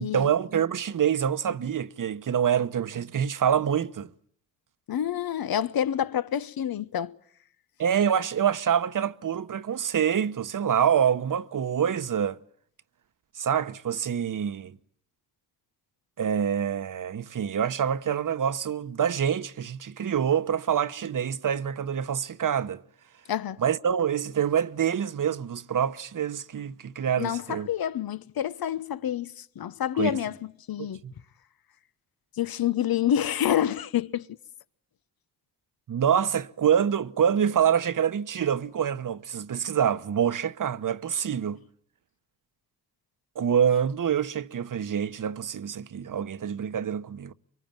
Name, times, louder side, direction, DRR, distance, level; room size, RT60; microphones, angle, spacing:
voice 1, 0.0-4.1 7.8-12.4 13.3-14.8 16.2-22.8 23.6-27.7 30.0-30.2 30.8-31.1 35.9-41.6 43.3-47.3, right 8 dB, 55° right, 1.1 m, -26 dB
voice 2, 4.9-7.2 23.3-23.6 27.2-31.0 32.4-34.3, left 10 dB, 65° left, 1.0 m, -28 dB
24.0 x 24.0 x 9.0 m
cardioid pair, 60°, 39 cm